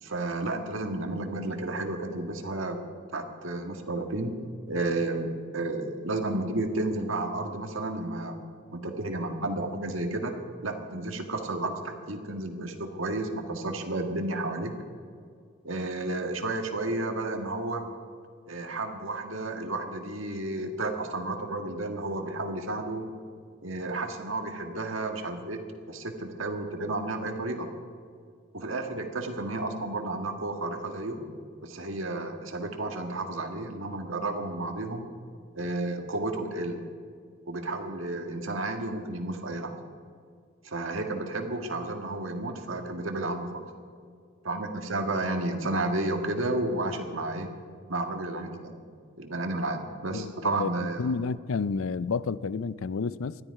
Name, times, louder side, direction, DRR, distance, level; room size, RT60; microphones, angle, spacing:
voice 1, 0.0-2.8 3.1-4.4 4.7-8.4 8.7-14.7 15.6-17.9 18.5-23.1 23.6-25.6 25.9-27.7 28.5-31.2 31.6-35.1 35.5-36.8 37.5-39.7 40.6-43.6 44.4-47.5 47.9-48.7 49.2-51.1, right 2 dB, 80° right, 4 dB, 1.8 m, -32 dB
voice 2, 50.1-53.4, left 4 dB, 85° left, 18 dB, 0.5 m, -30 dB
19.5 x 13.0 x 4.8 m, 2.2 s
head